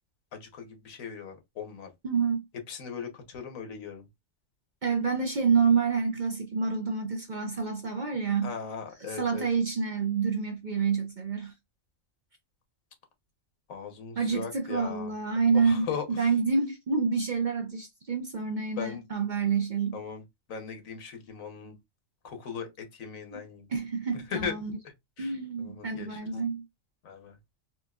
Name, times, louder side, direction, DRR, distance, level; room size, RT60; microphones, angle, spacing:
voice 1, 0.3-1.9 2.7-4.1 8.4-9.5 13.7-15.1 15.5-16.3 18.8-19.0 19.9-20.2 20.5-21.8 22.2-23.7 24.1-24.5 25.2-26.2 27.0-27.4, left 6 dB, 80° left, 1.4 m, -38 dB
voice 2, 2.0-2.4 4.8-8.5 9.2-11.5 14.2-15.9 16.2-20.0 23.3-23.4 23.7-24.8 25.2-26.6, right 5 dB, 45° right, 0.6 m, -28 dB
4.4 x 2.6 x 2.3 m
omnidirectional pair, 1.4 m